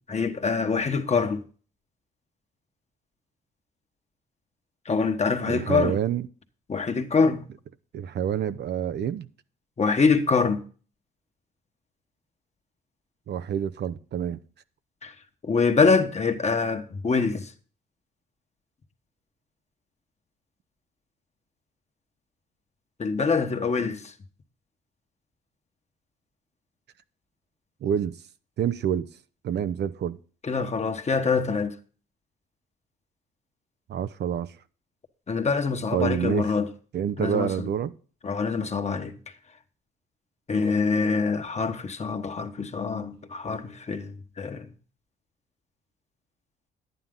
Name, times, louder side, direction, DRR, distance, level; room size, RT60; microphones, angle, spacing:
voice 1, 0.1-1.4 4.8-6.0 6.7-7.4 9.8-10.6 15.0-15.1 15.4-17.5 23.0-24.1 30.4-31.7 35.3-36.7 37.2-37.7 38.2-39.2 40.5-44.7, left 4 dB, 35° left, 1.3 m, -25 dB
voice 2, 5.5-6.3 7.9-9.3 13.3-14.4 27.8-28.1 28.6-29.1 29.4-30.2 33.9-34.5 35.9-36.5 36.9-37.9, right 9 dB, 60° right, 0.6 m, -27 dB
11.0 x 9.2 x 3.7 m
cardioid pair, 90°, 20 cm